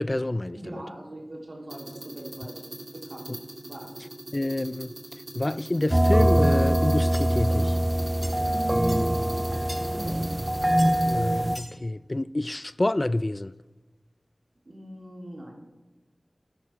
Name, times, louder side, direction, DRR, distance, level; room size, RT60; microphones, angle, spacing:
voice 1, 0.0-0.8 3.3-3.4 4.3-4.9 5.3-7.8 11.0-13.5, left 1 dB, 35° left, 0.3 m, -28 dB
voice 2, 0.5-2.6 2.9-3.3 3.6-3.9 8.3-9.3 9.8-10.3 14.6-15.5, equal, 75° right, 3.4 m, -39 dB
sound 1, 1.7-11.1, right 1 dB, 55° right, 2.4 m, -42 dB
sound 2, 5.9-11.6, right 1 dB, 25° right, 0.6 m, -23 dB
sound 3, 7.1-7.3 8.2-8.3 8.9-9.0 9.7-9.8 10.8-10.9 11.5-11.7, equal, 10° left, 5.1 m, -39 dB
17.0 x 10.0 x 3.6 m
wide cardioid pair, 45°, 0 cm